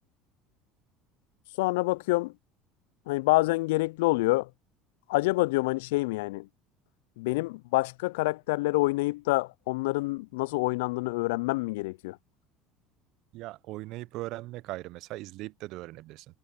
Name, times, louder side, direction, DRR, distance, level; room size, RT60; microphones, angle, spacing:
voice 1, 1.6-2.3 3.1-4.5 5.1-6.5 7.2-12.2, left 22 dB, 75° left, 0.4 m, -27 dB
voice 2, 13.3-16.3, right 18 dB, 60° right, 0.7 m, -39 dB
hypercardioid pair, 70°, 0 cm